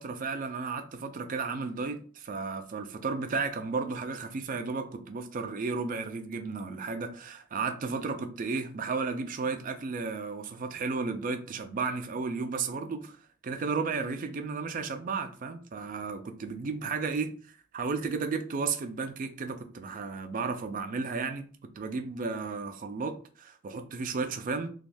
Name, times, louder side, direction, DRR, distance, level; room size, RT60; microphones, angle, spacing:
voice 1, 0.0-13.2 13.4-17.3 17.7-21.5 21.8-24.7, right 4 dB, 40° right, 0.4 m, -33 dB
3.3 x 2.3 x 2.6 m
head